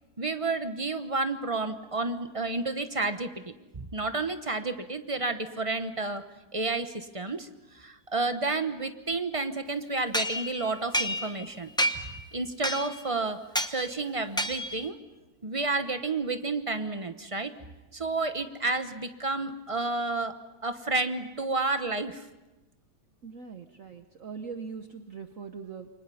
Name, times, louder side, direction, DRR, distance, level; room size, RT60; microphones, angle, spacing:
voice 1, 0.2-6.2 6.5-7.5 7.7-11.7 12.3-13.4 13.7-15.0 15.4-17.5 17.9-20.3 20.6-22.2, right 3 dB, 25° right, 8 dB, 0.7 m, -30 dB
sound 1, 10.1-11.5 11.8-12.2 12.6-13.1 13.5-13.8 14.4-14.9, equal, 5° left, 0.4 m, -29 dB
voice 2, 23.2-25.9, right 5 dB, 50° right, 6 dB, 1.2 m, -41 dB
28.0 x 24.5 x 5.6 m, 1.1 s
omnidirectional pair, 2.0 m